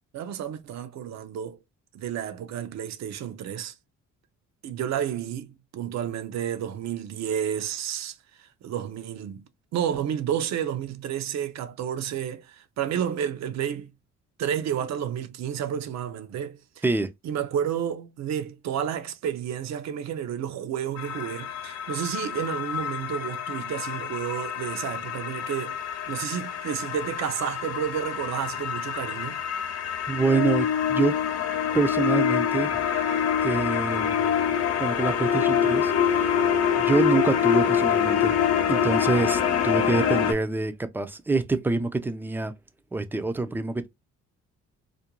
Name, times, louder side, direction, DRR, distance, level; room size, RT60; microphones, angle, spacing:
voice 1, 0.1-1.6 1.9-3.8 4.6-9.4 9.7-13.9 14.4-16.8 17.2-25.8 26.1-29.4, right 9 dB, 60° right, 0.5 m, -31 dB
sound 1, 21.0-40.3, left 8 dB, 55° left, 0.6 m, -26 dB
voice 2, 30.1-31.2 31.7-34.3 34.8-36.4 36.8-38.3 38.7-42.5 42.9-43.9, right 3 dB, 5° right, 0.3 m, -26 dB
2.5 x 2.1 x 2.9 m
cardioid pair, 90°, 30 cm